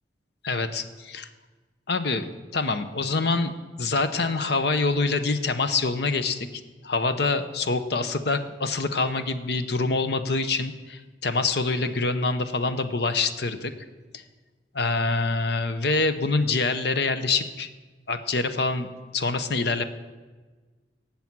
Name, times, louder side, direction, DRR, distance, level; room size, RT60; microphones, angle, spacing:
voice 1, 0.4-1.3 1.9-3.5 3.8-6.5 6.8-13.7 14.1-14.2 14.7-17.7 18.1-18.9 19.1-19.8, left 3 dB, 65° left, 10 dB, 0.8 m, -25 dB
18.0 x 7.2 x 6.1 m, 1.3 s
head